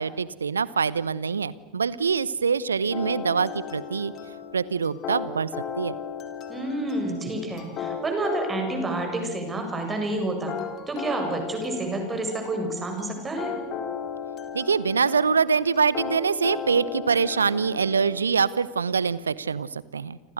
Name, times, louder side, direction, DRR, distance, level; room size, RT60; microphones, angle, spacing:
voice 1, 0.0-4.1 4.5-5.5 5.8-5.9 14.5-20.3, right 5 dB, 75° right, 20 dB, 0.9 m, -24 dB
sound 1, 2.9-18.2, left 7 dB, 40° left, 4.1 m, -36 dB
voice 2, 6.5-10.6 10.9-13.6, right 2 dB, 20° right, 4 dB, 7.6 m, -29 dB
29.5 x 26.0 x 6.7 m, 1.1 s
figure-of-eight pair, 80°, 0 cm